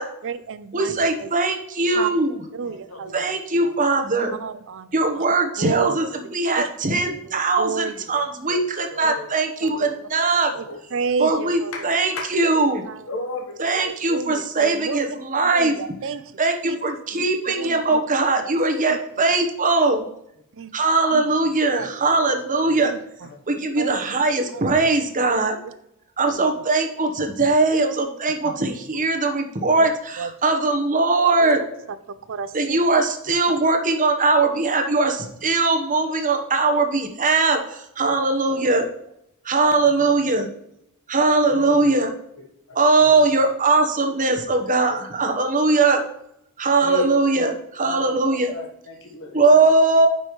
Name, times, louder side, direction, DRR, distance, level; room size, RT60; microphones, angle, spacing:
voice 1, 0.2-1.3 1.9-2.1 2.5-3.1 3.6-3.7 4.4-5.3 5.6-6.1 6.5-6.7 7.0-8.3 9.0-9.1 9.6-9.7 10.5-10.6 10.9-11.7 12.9-13.1 13.8-15.0 15.5-16.4 16.6-16.8 17.5-18.0 18.4-18.5 20.5-20.7 21.1-21.2 21.7-21.9 22.8-23.0 23.8-23.9 24.5-24.7 25.2-25.4 25.6-25.7 26.2-26.6 28.4-28.6 29.8-29.9 30.2-30.3 31.4-31.6 32.3-33.0, right 5 dB, 60° right, 14 dB, 0.5 m, -31 dB
voice 2, 0.7-2.4 3.1-4.3 4.9-10.5 11.2-12.8 13.6-15.8 16.4-20.0 20.7-22.9 23.5-25.6 26.2-31.6 32.5-38.9 39.4-40.5 41.1-42.1 42.7-46.0 46.6-48.5 49.3-50.1, right 3 dB, 35° right, 5 dB, 1.1 m, -20 dB
voice 3, 2.6-3.3 5.1-5.2 7.1-7.2 8.4-8.6 8.9-9.3 9.7-9.9 10.6-10.8 11.7-11.8 12.1-12.2 13.1-13.8 15.3-15.4 16.7-17.2 20.9-21.0 21.7-22.3 22.6-22.8 23.2-23.4 28.9-29.0 31.3-31.9 36.0-36.1 36.7-36.8 38.0-38.1 38.5-38.8 39.9-40.3 41.5-41.9 42.7-43.4 46.8-47.1 47.3-47.4 47.8-48.1 48.5-49.6, left 3 dB, 65° left, 1 dB, 1.2 m, -36 dB
9.4 x 5.4 x 3.1 m, 0.76 s
head